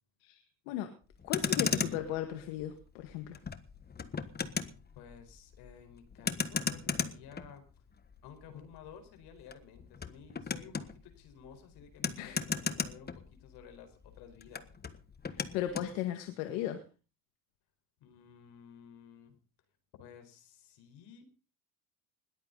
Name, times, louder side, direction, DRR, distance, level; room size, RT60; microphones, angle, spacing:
voice 1, 0.2-0.9 1.2-3.4 12.2-12.4 15.3-16.8, left 11 dB, 90° left, 7 dB, 2.0 m, -36 dB
Motor vehicle (road), 1.1-13.8 14.0-15.9, left 5 dB, 25° left, 1.4 m, -37 dB
voice 2, 4.9-7.6 8.2-14.7 18.0-19.4 20.0-21.2, left 7 dB, 75° left, 7 dB, 4.6 m, -53 dB
20.5 x 14.0 x 4.0 m, 0.35 s
cardioid pair, 105°, 40 cm